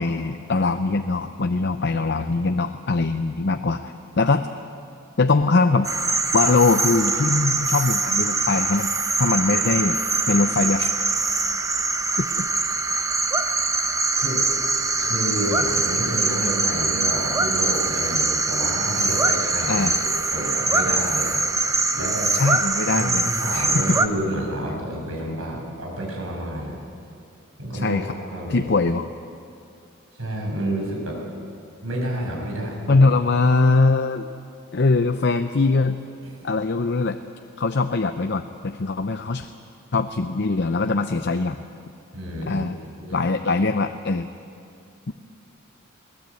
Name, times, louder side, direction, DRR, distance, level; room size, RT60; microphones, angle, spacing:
voice 1, 0.0-4.5 5.2-5.9 6.3-8.9 9.2-10.0 10.3-11.0 12.2-12.5 19.7-20.0 22.3-23.8 27.8-28.1 28.5-29.0 32.9-34.3 34.7-36.0 36.4-37.2 37.6-39.5 39.9-41.6 42.5-42.8 43.1-44.3 45.1-45.2, left 3 dB, 50° left, 8 dB, 0.7 m, -22 dB
sound 1, 5.8-24.1, right 3 dB, 15° right, 0.8 m, -23 dB
voice 2, 15.0-22.3 22.9-26.8 27.6-28.6 30.2-31.2 31.8-33.0 42.1-42.7 43.0-43.3, right 1 dB, 75° right, -1 dB, 6.7 m, -29 dB
22.5 x 18.5 x 8.4 m, 2.5 s
head